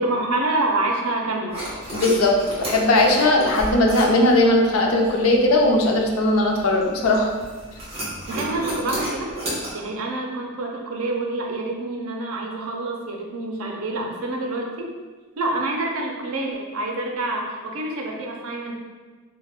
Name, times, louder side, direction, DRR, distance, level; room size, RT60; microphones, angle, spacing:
voice 1, 0.0-1.5 8.3-9.3 9.7-14.9 15.4-18.7, right 2 dB, 85° right, 0 dB, 0.5 m, -27 dB
sound 1, 1.5-9.7, right 1 dB, 30° right, 0.8 m, -33 dB
voice 2, 1.9-2.3 2.6-7.3, left 2 dB, 85° left, 1 dB, 0.4 m, -18 dB
2.3 x 2.1 x 3.4 m, 1.4 s
head